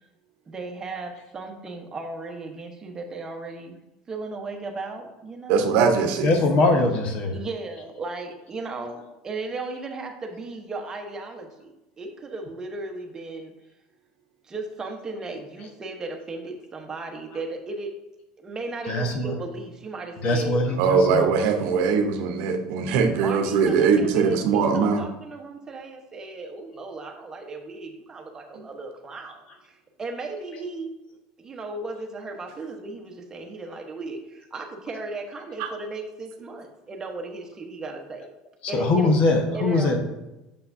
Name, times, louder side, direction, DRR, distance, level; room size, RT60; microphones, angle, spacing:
voice 1, 0.5-3.8 4.1-5.8 6.4-6.5 7.3-13.5 14.4-17.9 18.4-21.1 23.2-30.9 31.4-38.3 38.7-39.1 39.5-40.0, right 3 dB, 25° right, 2 dB, 1.0 m, -36 dB
voice 2, 5.5-6.3 20.8-25.0 35.6-35.7, right 5 dB, 75° right, 5 dB, 0.8 m, -21 dB
voice 3, 6.2-7.4 18.8-19.3 20.2-21.3 38.6-40.0, left 2 dB, 50° left, 4 dB, 1.1 m, -22 dB
6.7 x 5.7 x 2.7 m, 0.96 s
supercardioid pair, 120°, 3 cm